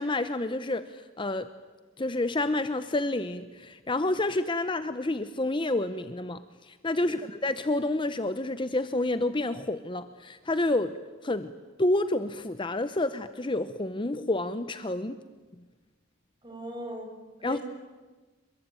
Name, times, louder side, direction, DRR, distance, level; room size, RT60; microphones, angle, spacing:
voice 1, 0.0-1.5 2.0-10.9 11.2-11.5 11.8-15.2 17.4-17.6, left 2 dB, 25° left, 11 dB, 0.8 m, -29 dB
voice 2, 16.4-17.2 17.4-17.6, equal, 25° right, 2 dB, 7.0 m, -39 dB
27.5 x 22.5 x 9.0 m, 1.3 s
head